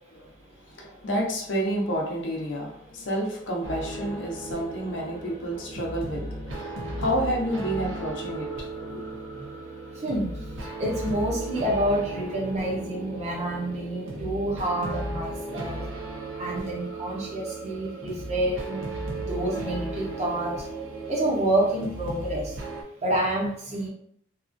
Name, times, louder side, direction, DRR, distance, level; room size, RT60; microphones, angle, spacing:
voice 1, 0.1-8.5 8.8-9.0, right 1 dB, 70° left, -1 dB, 0.6 m, -30 dB
sound 1, 3.6-22.8, right 2 dB, 85° right, 0.6 m, -35 dB
voice 2, 10.0-10.3 10.6-15.8 16.4-18.9 19.2-20.6 21.1-22.6 23.0-23.9, right 1 dB, 35° right, -3 dB, 0.7 m, -28 dB
2.8 x 2.3 x 2.5 m, 0.67 s
head